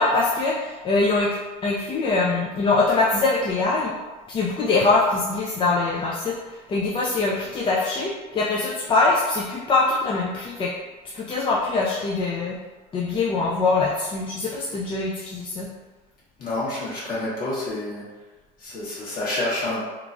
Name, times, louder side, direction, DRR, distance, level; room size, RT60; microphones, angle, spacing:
voice 1, 0.0-3.9 4.3-10.7 11.1-12.6 12.9-15.7, left 3 dB, 25° left, -5 dB, 0.4 m, -23 dB
voice 2, 16.4-18.0 18.6-19.8, left 2 dB, 45° left, -8 dB, 1.4 m, -28 dB
3.0 x 2.2 x 2.5 m, 1.2 s
supercardioid pair, 100°, 20 cm